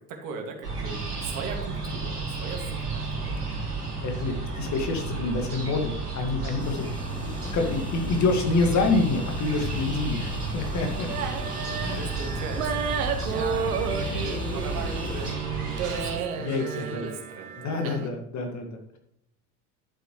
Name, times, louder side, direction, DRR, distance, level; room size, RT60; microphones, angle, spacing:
voice 1, 0.1-3.4 8.1-8.2 10.7-11.2 11.9-12.9 13.2-17.6, right 4 dB, 45° right, 3 dB, 2.5 m, -39 dB
sound 1, 0.6-16.2, right 3 dB, 85° right, 2.5 m, -32 dB
voice 2, 4.0-6.9 7.2-11.1 11.8-12.2 16.4-17.1 17.6-19.0, left 3 dB, 40° left, 4 dB, 2.2 m, -27 dB
sound 2, 6.6-15.3, left 4 dB, 10° left, 0.5 m, -38 dB
sound 3, 11.1-18.1, right 7 dB, 65° right, 1.2 m, -32 dB
11.0 x 7.9 x 3.3 m, 0.74 s
figure-of-eight pair, 70°, 45 cm